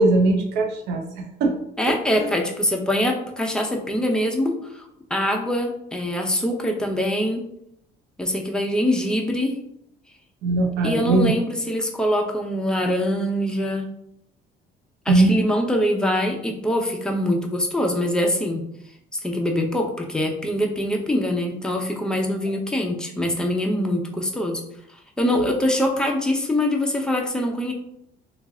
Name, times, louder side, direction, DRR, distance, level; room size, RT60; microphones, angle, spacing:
voice 1, 0.0-1.5 1.9-2.3 10.4-11.3 15.1-15.5 25.3-25.5, right 2 dB, 85° right, 2 dB, 0.7 m, -20 dB
voice 2, 1.8-4.8 5.1-7.4 8.2-9.5 10.8-13.9 15.1-18.6 19.2-24.6 25.2-27.7, left 1 dB, 5° left, 1 dB, 0.6 m, -23 dB
3.1 x 2.4 x 3.5 m, 0.75 s
cardioid pair, 110°, 17 cm